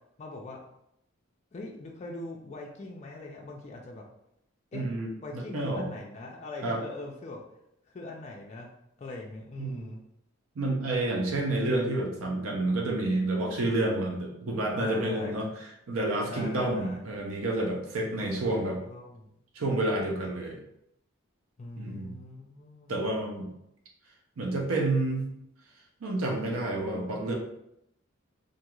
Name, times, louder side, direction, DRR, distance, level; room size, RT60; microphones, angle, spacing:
voice 1, 0.2-0.6 1.5-4.0 4.7-4.9 5.2-7.4 7.9-8.7 9.0-10.0 14.8-15.5 16.3-17.0 18.1-18.3 18.6-19.3 21.6-23.1, left 2 dB, 30° left, -1 dB, 0.3 m, -42 dB
voice 2, 4.7-5.9 6.6-6.8 9.6-9.9 10.6-15.5 15.9-18.8 19.5-20.6 21.8-22.1 22.9-23.5 24.4-25.3 26.0-27.3, right 2 dB, 75° right, 0 dB, 0.6 m, -29 dB
2.5 x 2.3 x 3.0 m, 0.78 s
head